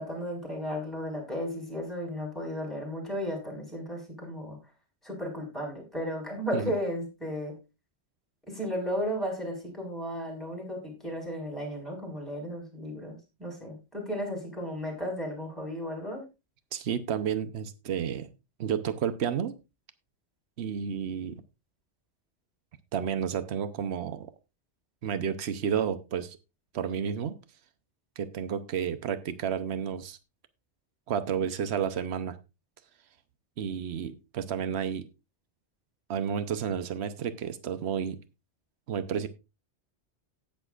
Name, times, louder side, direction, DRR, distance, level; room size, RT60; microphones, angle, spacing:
voice 1, 0.0-4.6 5.0-7.6 8.5-16.2, equal, ahead, 0 dB, 4.4 m, -34 dB
voice 2, 16.7-18.3 18.6-19.5 20.6-21.4 22.9-24.3 25.0-26.4 26.7-27.4 28.2-30.2 31.1-32.4 33.6-35.1 36.1-38.2 38.9-39.3, right 8 dB, 75° right, 11 dB, 1.1 m, -31 dB
18.0 x 6.7 x 2.4 m, 0.27 s
omnidirectional pair, 1.1 m